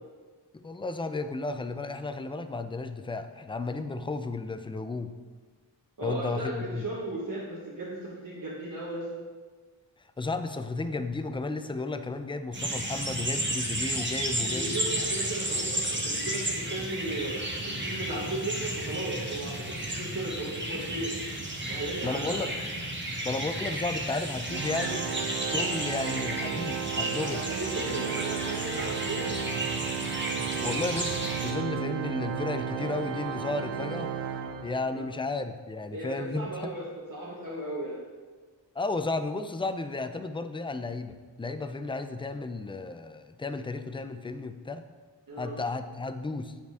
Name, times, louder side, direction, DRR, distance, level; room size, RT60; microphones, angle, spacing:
voice 1, 0.5-5.1 6.0-6.8 10.2-14.8 22.0-22.5 23.2-25.0 25.5-27.4 30.6-34.1 34.6-36.7 38.8-44.8 45.4-46.5, left 3 dB, 15° left, 9 dB, 0.3 m, -33 dB
voice 2, 6.0-9.1 14.5-17.4 17.6-21.1 21.7-22.4 27.3-29.2 34.9-35.1 35.9-38.0 45.3-45.6, right 1 dB, 45° right, -6 dB, 1.4 m, -36 dB
sound 1, 12.5-31.5, right 1 dB, 25° right, 1.1 m, -33 dB
Organ, 24.5-35.1, right 8 dB, 70° right, 0.6 m, -34 dB
9.4 x 4.3 x 3.5 m, 1.4 s
wide cardioid pair, 60°, 45 cm